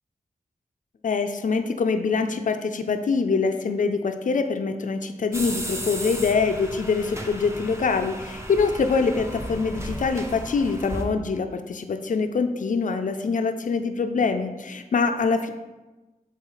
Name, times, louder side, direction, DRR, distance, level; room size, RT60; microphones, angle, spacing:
voice 1, 1.0-15.5, left 4 dB, 65° left, 7 dB, 0.5 m, -24 dB
sound 1, 5.3-11.0, equal, 20° right, 0.8 m, -35 dB
7.2 x 3.7 x 3.9 m, 1.1 s
wide cardioid pair, 65°, 14 cm